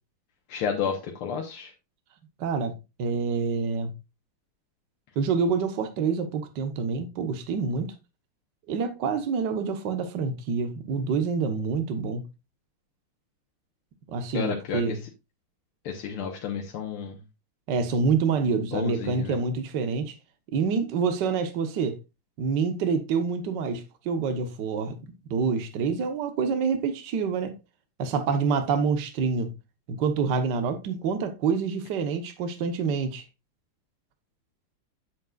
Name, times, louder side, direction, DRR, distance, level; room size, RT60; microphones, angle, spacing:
voice 1, 0.5-1.7 14.3-15.0 15.9-17.2 18.7-19.4, left 7 dB, 85° left, 2.0 m, -31 dB
voice 2, 2.4-3.9 5.1-7.9 8.7-12.2 14.1-15.0 17.7-20.1 20.5-22.0 22.4-25.0 25.3-27.5 28.0-29.5 29.9-33.2, right 5 dB, 60° right, 1.7 m, -27 dB
9.3 x 7.4 x 2.4 m
omnidirectional pair, 2.3 m